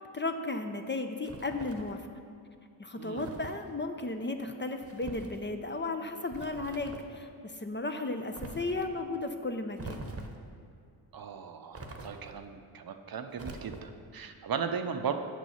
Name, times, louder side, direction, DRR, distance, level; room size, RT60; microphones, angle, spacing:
voice 1, 0.0-2.0 2.8-10.0, left 2 dB, 25° left, 6 dB, 0.6 m, -35 dB
sound 1, 1.2-2.0 3.2-3.6 4.8-5.4 6.3-7.1 8.3-8.9 9.8-10.5 11.7-12.4 13.3-14.1, right 2 dB, 30° right, 1.0 m, -44 dB
voice 2, 3.0-3.4 11.1-15.1, right 6 dB, 50° right, 7 dB, 0.6 m, -37 dB
6.7 x 6.1 x 5.7 m, 2.4 s
cardioid pair, 50°, 48 cm